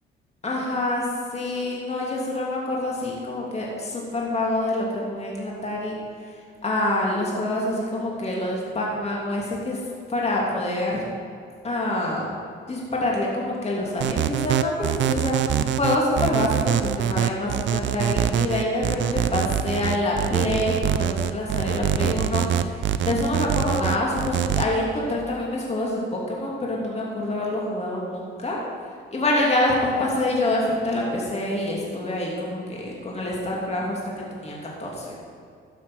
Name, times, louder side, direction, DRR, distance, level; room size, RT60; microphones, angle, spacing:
voice 1, 0.4-1.1 1.3-6.0 6.6-9.8 10.1-11.0 11.6-12.3 12.7-28.6 29.1-34.0 34.4-35.1, left 1 dB, 30° left, -3 dB, 2.9 m, -26 dB
sound 1, 14.0-24.6, right 10 dB, 70° right, 0.6 m, -24 dB
13.5 x 7.2 x 6.3 m, 2.3 s
cardioid pair, 90°, 20 cm